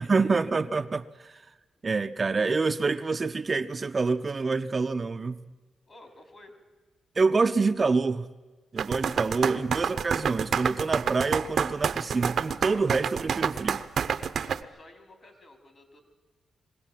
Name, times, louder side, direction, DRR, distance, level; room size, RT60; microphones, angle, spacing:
voice 1, 0.0-1.4 1.8-5.4 7.2-8.3 8.7-13.8, right 4 dB, 35° right, 0.6 m, -27 dB
voice 2, 5.9-6.5 14.2-16.0, left 1 dB, 45° left, 3.7 m, -52 dB
sound 1, 8.8-14.6, right 7 dB, 65° right, 0.8 m, -28 dB
21.5 x 16.5 x 7.6 m
cardioid pair, 90°, 0 cm